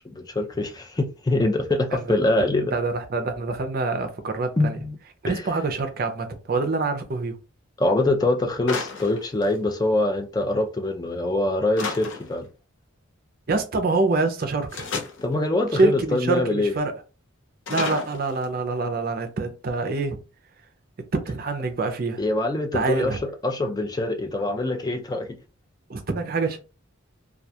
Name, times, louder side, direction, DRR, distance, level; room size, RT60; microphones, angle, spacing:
voice 1, 0.2-2.8 4.6-4.9 5.3-5.4 7.8-12.5 15.2-16.7 22.2-25.3, left 2 dB, 20° left, 0.3 m, -24 dB
voice 2, 1.9-4.8 5.2-7.4 13.5-14.9 15.7-16.9 17.7-20.2 21.1-22.2 22.7-23.2 25.9-26.6, right 3 dB, 45° right, 0.5 m, -26 dB
Wood impacts, 8.7-9.9 11.8-12.5 14.7-15.3 17.7-18.7, left 4 dB, 65° left, 0.6 m, -32 dB
2.3 x 2.2 x 2.8 m
head